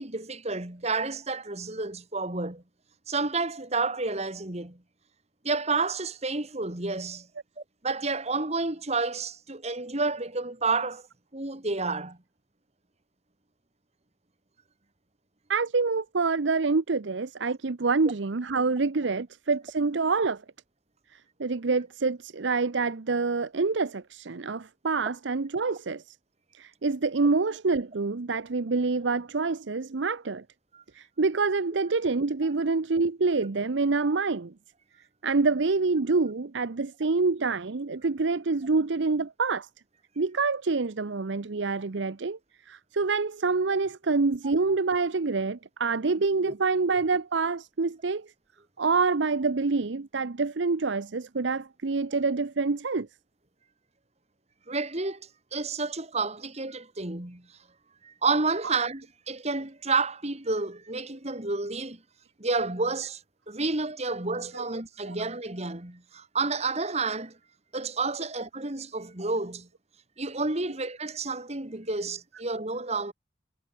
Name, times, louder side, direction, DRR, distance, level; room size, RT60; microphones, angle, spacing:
voice 1, 0.0-2.6 3.1-4.8 5.4-7.3 7.6-11.0 11.3-12.2 30.7-30.8 34.0-34.2 46.5-46.6 54.7-57.4 58.0-62.0 62.4-63.2 63.5-67.4 67.7-69.7 70.2-73.1, right 3 dB, 35° right, 2.4 m, -30 dB
voice 2, 15.5-20.4 21.1-26.1 26.5-30.4 30.9-34.5 35.2-39.7 40.2-42.4 42.7-48.3 48.8-53.1 64.5-64.6 65.1-65.2, right 4 dB, 65° right, 0.7 m, -26 dB
head